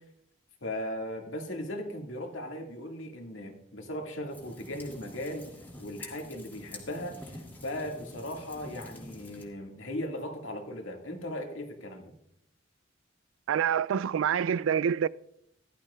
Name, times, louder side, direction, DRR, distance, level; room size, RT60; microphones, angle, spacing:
voice 1, 0.6-5.5 5.8-12.1, left 1 dB, 90° left, 2.0 m, -38 dB
sound 1, 4.3-9.5, left 1 dB, 10° left, 2.5 m, -47 dB
voice 2, 13.5-15.1, right 8 dB, 85° right, 0.3 m, -26 dB
16.0 x 12.0 x 2.4 m
head